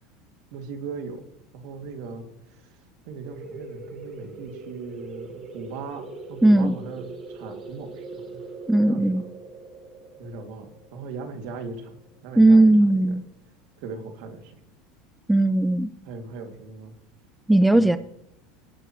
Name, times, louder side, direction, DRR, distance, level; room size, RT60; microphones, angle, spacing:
voice 1, 0.5-1.2 1.5-2.7 3.0-8.4 8.7-9.2 10.2-11.9 12.2-13.2 13.8-14.6 16.0-16.9 17.7-18.0, right 4 dB, 60° right, 5 dB, 2.2 m, -39 dB
sound 1, 3.2-12.6, right 3 dB, 30° right, 2.9 m, -42 dB
voice 2, 6.4-6.7 8.7-9.2 12.4-13.2 15.3-15.9 17.5-18.0, right 2 dB, 5° right, 13 dB, 0.4 m, -17 dB
17.5 x 12.0 x 3.0 m, 0.78 s
supercardioid pair, 170°, 0 cm